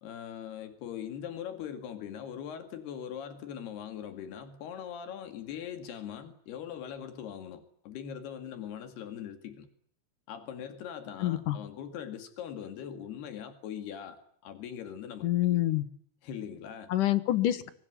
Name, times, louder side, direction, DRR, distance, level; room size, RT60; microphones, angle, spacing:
voice 1, 0.0-9.7 10.3-15.6 16.2-16.9, left 9 dB, 90° left, 9 dB, 4.2 m, -41 dB
voice 2, 11.2-11.6 15.2-15.9 16.9-17.7, left 14 dB, 65° left, 14 dB, 2.6 m, -26 dB
24.5 x 20.0 x 9.9 m, 0.62 s
omnidirectional pair, 4.5 m